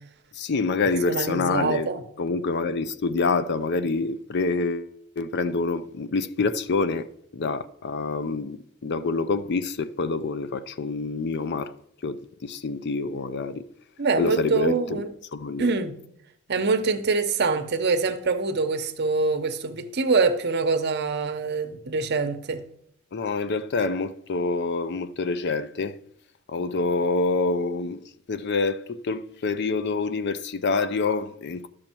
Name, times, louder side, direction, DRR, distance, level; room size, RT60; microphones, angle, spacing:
voice 1, 0.3-1.9 2.2-7.1 7.3-11.7 12.0-13.7 14.2-15.0 15.3-15.7 23.1-25.9 26.5-31.7, left 4 dB, 55° left, 0.5 m, -27 dB
voice 2, 1.1-2.0 14.0-15.1 15.6-15.9 16.5-22.6, right 4 dB, 55° right, 0.9 m, -24 dB
12.0 x 6.3 x 4.5 m
head